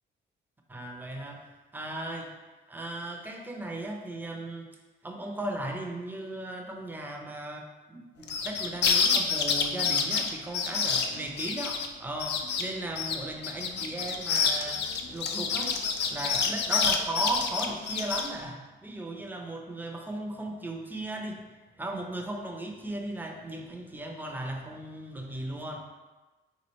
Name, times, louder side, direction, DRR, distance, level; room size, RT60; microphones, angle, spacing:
voice 1, 0.7-1.5 1.7-2.3 2.7-4.7 5.0-14.8 15.1-15.8 16.1-21.4 21.8-25.8, right 1 dB, 10° right, 2 dB, 0.5 m, -36 dB
sound 1, 8.2-11.9 12.2-12.6 13.0-18.3, left 6 dB, 60° left, 0.4 m, -27 dB
3.1 x 2.4 x 4.2 m, 1.2 s
cardioid pair, 90°, 20 cm